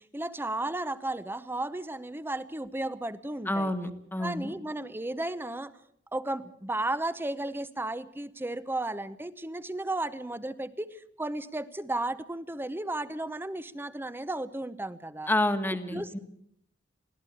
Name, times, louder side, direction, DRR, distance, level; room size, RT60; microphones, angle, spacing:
voice 1, 0.0-3.7 4.2-5.7 6.1-10.9 11.2-15.3 15.9-16.2, right 2 dB, 10° right, 15 dB, 0.8 m, -34 dB
voice 2, 3.4-4.5 15.3-16.2, left 1 dB, 10° left, 9 dB, 1.5 m, -29 dB
23.0 x 16.5 x 7.1 m, 0.70 s
head